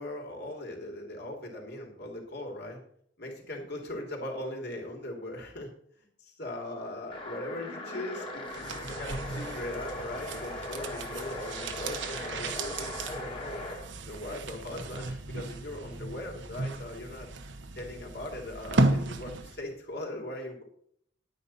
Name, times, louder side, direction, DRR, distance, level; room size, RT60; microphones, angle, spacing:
voice 1, 0.0-2.8 3.2-5.7 6.0-13.6 14.0-17.3 17.7-20.6, left 1 dB, 60° left, 0 dB, 3.1 m, -39 dB
sound 1, 7.1-13.9, left 1 dB, 25° left, 2.1 m, -39 dB
sound 2, 8.5-19.7 20.0-20.1, right 2 dB, 75° right, 1.1 m, -34 dB
11.0 x 9.3 x 4.2 m, 0.67 s
head